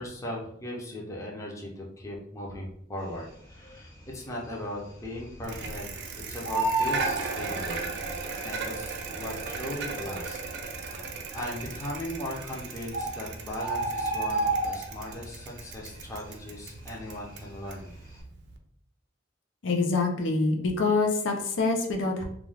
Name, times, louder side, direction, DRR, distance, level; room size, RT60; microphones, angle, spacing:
voice 1, 0.0-5.9 6.3-7.9 8.4-10.4 10.8-11.0 11.3-17.9, left 1 dB, 15° left, -3 dB, 0.5 m, -38 dB
Bird, 3.5-4.1 4.4-4.5 4.8-6.0 6.3-8.1 8.9-9.0 9.7-9.8 10.0-10.1 10.7-11.2 12.1-12.2 12.6-12.7 12.9-15.2 15.5-15.9 16.2-17.6 17.9-18.1, right 2 dB, 50° left, 0.9 m, -30 dB
Bicycle, 5.4-18.6, right 4 dB, 60° right, 0.4 m, -37 dB
voice 2, 19.6-22.2, left 3 dB, 80° left, 1 dB, 0.5 m, -25 dB
2.4 x 2.3 x 3.2 m, 0.69 s
head